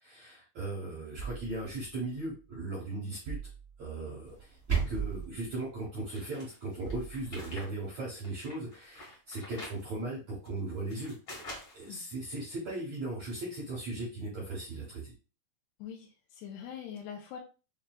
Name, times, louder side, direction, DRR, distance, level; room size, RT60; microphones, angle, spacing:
voice 1, 0.0-3.4 3.8-11.1 11.7-15.1, right 2 dB, 70° right, -5 dB, 1.6 m, -38 dB
sound 1, 1.2-2.6 3.3-4.1 4.9-5.8 6.9-7.7, right 6 dB, 90° right, 1.8 m, -44 dB
sound 2, 4.2-5.3, right 6 dB, 40° right, 0.8 m, -32 dB
sound 3, 6.1-7.7 8.1-9.8 10.5-11.9, left 1 dB, 60° left, 1.3 m, -46 dB
voice 2, 16.4-17.4, left 8 dB, 80° left, 2 dB, 2.6 m, -43 dB
6.7 x 2.4 x 2.3 m, 0.34 s
omnidirectional pair, 4.9 m